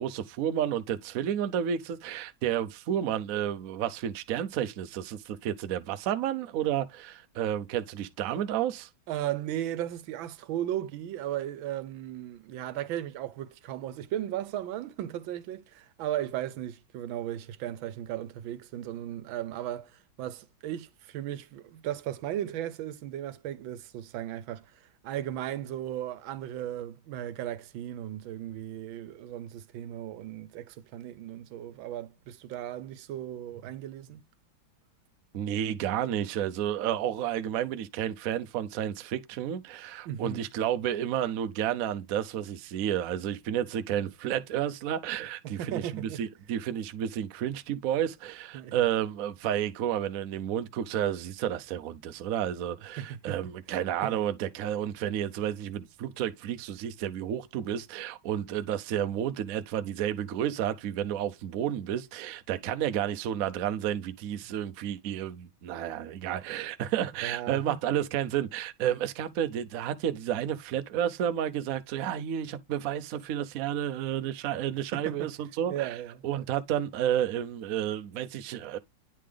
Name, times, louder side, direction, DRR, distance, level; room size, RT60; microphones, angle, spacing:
voice 1, 0.0-8.9 35.3-75.9 76.2-78.8, right 10 dB, 70° right, 0.8 m, -31 dB
voice 2, 9.1-34.2 40.0-40.5 45.4-46.2 48.5-48.8 53.0-53.4 53.7-53.8 54.0-54.2 67.2-67.8 74.9-75.3 75.7-76.2, right 12 dB, 85° right, 1.5 m, -36 dB
9.4 x 3.6 x 3.3 m
omnidirectional pair, 2.1 m